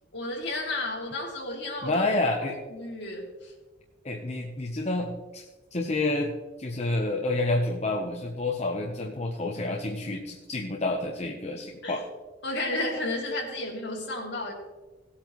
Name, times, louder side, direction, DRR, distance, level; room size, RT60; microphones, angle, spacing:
voice 1, 0.1-2.0 2.7-3.5 11.8-12.0 12.4-14.5, left 2 dB, 65° left, -1 dB, 2.6 m, -32 dB
voice 2, 1.8-2.6 4.0-5.4 5.7-6.3 6.6-12.0, left 2 dB, 35° left, 1 dB, 0.9 m, -29 dB
17.5 x 8.5 x 3.1 m, 1.2 s
head